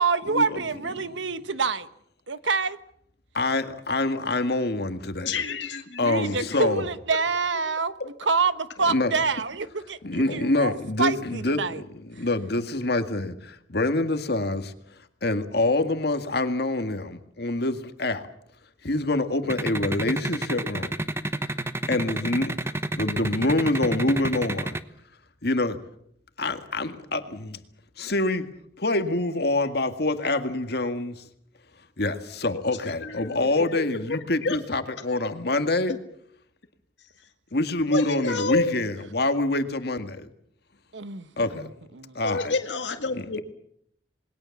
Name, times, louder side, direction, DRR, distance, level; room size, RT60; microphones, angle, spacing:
voice 1, 0.0-1.9 2.3-2.8 6.0-7.9 8.2-11.8 33.4-33.5 40.9-42.1, right 4 dB, 85° right, 1.3 m, -27 dB
voice 2, 3.3-5.3 6.0-6.9 8.9-9.1 10.0-14.7 15.2-18.2 18.8-20.9 21.9-24.8 25.4-25.8 26.4-27.6 28.0-28.5 28.8-31.3 32.0-36.0 37.5-40.3 41.4-41.7 42.2-42.5 43.4-43.5, left 2 dB, 60° left, 1.9 m, -26 dB
voice 3, 5.2-6.6 8.0-8.1 32.8-33.6 34.1-34.6 37.9-38.7 42.2-43.4, left 3 dB, 75° left, 2.0 m, -29 dB
sound 1, 19.5-24.8, right 1 dB, 15° right, 1.0 m, -28 dB
28.0 x 21.0 x 7.2 m
head